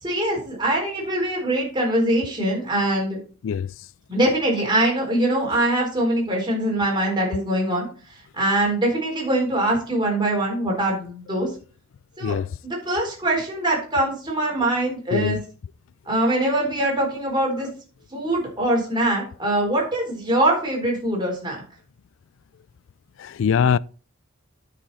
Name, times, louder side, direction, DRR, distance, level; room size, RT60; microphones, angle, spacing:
voice 1, 0.0-3.2 4.1-7.9 8.3-11.5 12.2-12.4 12.6-15.4 16.1-17.7 18.1-21.6, right 1 dB, 20° right, 4.0 m, -23 dB
voice 2, 23.2-23.8, left 7 dB, 60° left, 0.3 m, -22 dB
10.0 x 6.2 x 4.1 m
head